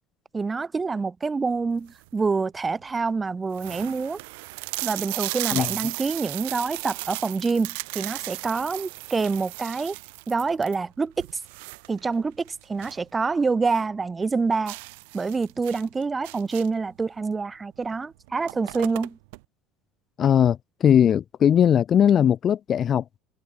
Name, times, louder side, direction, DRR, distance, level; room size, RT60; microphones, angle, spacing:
voice 1, 0.3-4.2 4.8-9.9 10.3-11.3 11.9-14.8 15.1-19.2, right 4 dB, 20° right, 1.0 m, -26 dB
sound 1, 1.7-2.2 2.8-2.9 3.1-3.2 3.5-13.1 13.4-13.5 13.9-14.0 14.7-16.9 17.8-18.0 18.2-19.4, right 27 dB, 85° right, 2.9 m, -35 dB
voice 2, 20.2-23.0, left 9 dB, 40° left, 0.4 m, -19 dB
supercardioid pair, 100°, 0 cm